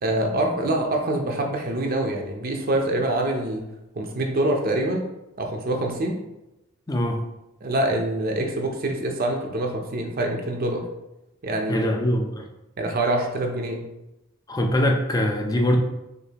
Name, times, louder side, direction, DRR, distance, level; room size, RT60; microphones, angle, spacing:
voice 1, 0.0-3.6 4.0-5.1 5.4-6.2 7.6-10.8 11.4-11.9 12.8-13.8, right 1 dB, 45° right, 2 dB, 0.6 m, -25 dB
voice 2, 6.9-7.2 11.7-12.5 14.5-15.8, equal, 20° left, 2 dB, 0.5 m, -23 dB
6.3 x 2.6 x 2.8 m, 0.93 s
head